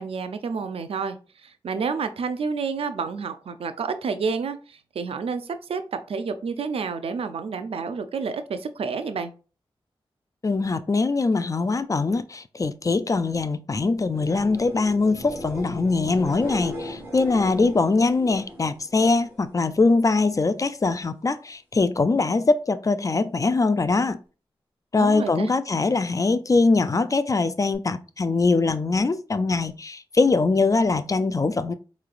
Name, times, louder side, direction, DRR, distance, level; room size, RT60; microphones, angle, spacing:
voice 1, 0.0-9.3 25.0-25.5, right 5 dB, 85° right, 0.4 m, -29 dB
voice 2, 10.4-24.2 24.9-31.7, left 3 dB, 35° left, 0.4 m, -22 dB
sound 1, 14.0-19.8 20.1-20.7 27.7-27.8, equal, 25° right, 1.7 m, -38 dB
4.6 x 3.1 x 2.5 m
cardioid pair, 60°, 10 cm